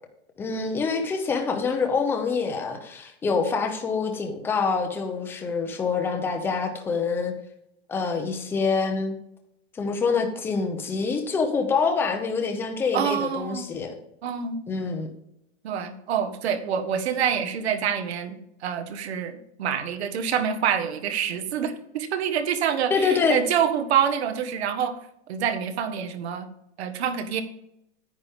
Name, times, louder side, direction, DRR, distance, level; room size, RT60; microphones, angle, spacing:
voice 1, 0.4-7.3 7.9-9.1 9.7-13.9 14.7-15.1 22.9-23.4, left 5 dB, 5° left, 4 dB, 0.8 m, -26 dB
voice 2, 12.9-13.7 14.2-14.6 15.6-25.0 25.3-26.5 26.8-27.4, right 8 dB, 65° right, 7 dB, 1.6 m, -26 dB
10.0 x 10.0 x 3.7 m, 0.78 s
supercardioid pair, 180°, 34 cm